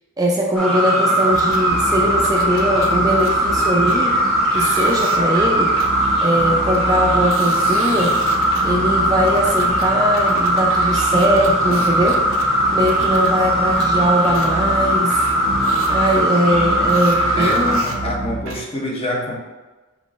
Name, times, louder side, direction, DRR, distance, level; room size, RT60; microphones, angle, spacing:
voice 1, 0.2-4.2 4.5-5.8 6.2-8.2 8.6-12.2 12.7-15.2 15.9-17.8, equal, 20° right, -2 dB, 0.4 m, -20 dB
sound 1, 0.6-17.8, right 1 dB, ahead, 0.9 m, -19 dB
sound 2, 1.3-18.6, right 2 dB, 75° right, 0.5 m, -30 dB
voice 2, 17.4-19.3, left 1 dB, 30° left, -1 dB, 0.7 m, -26 dB
4.7 x 3.7 x 2.5 m, 1.2 s
head